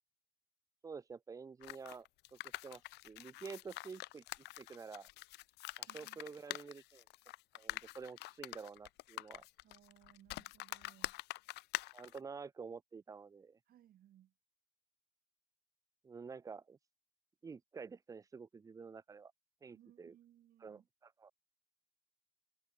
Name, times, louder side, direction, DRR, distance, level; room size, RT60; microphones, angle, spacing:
voice 1, 0.8-4.2 4.6-5.1 5.8-7.0 7.5-9.5 11.9-13.6 16.0-16.8 17.4-19.3 19.6-20.2 20.6-21.3, right 5 dB, 20° right, 0.5 m, -49 dB
sound 1, 1.6-12.2, left 20 dB, 80° left, 0.6 m, -46 dB
voice 2, 5.9-6.6 9.6-11.2 13.7-14.3 19.7-20.9, right 12 dB, 60° right, 3.0 m, -65 dB
cardioid pair, 110°, 17 cm